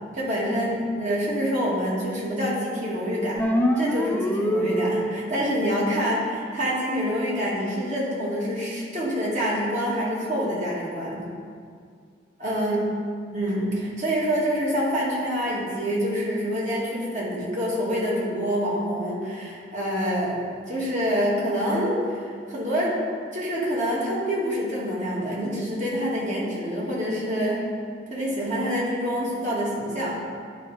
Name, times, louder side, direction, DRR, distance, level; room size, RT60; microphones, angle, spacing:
voice 1, 0.1-3.5 3.8-11.2 12.4-12.8 13.3-23.0 23.3-27.6 28.1-30.2, equal, 40° right, -6 dB, 2.0 m, -26 dB
sound 1, 3.4-5.4, equal, 10° left, 0.4 m, -24 dB
10.5 x 3.9 x 4.8 m, 2.1 s
head